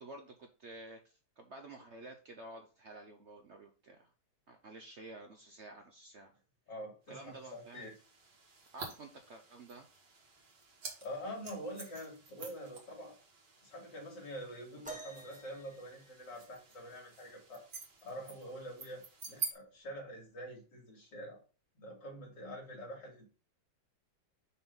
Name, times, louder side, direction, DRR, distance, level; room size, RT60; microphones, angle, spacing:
voice 1, 0.0-4.1 4.5-6.3 7.1-7.9 8.7-9.9, right 2 dB, 55° right, 4 dB, 0.8 m, -51 dB
voice 2, 6.7-7.9 11.0-13.1 13.6-17.6 18.0-21.4 21.7-23.2, equal, 75° left, -1 dB, 3.2 m, -46 dB
sound 1, 7.2-19.5, right 6 dB, 75° right, 2.2 m, -49 dB
sound 2, 14.8-16.7 18.4-18.5 19.3-19.5 20.4-20.5, right 2 dB, 10° right, 0.5 m, -50 dB
6.0 x 3.8 x 5.5 m, 0.36 s
omnidirectional pair, 1.9 m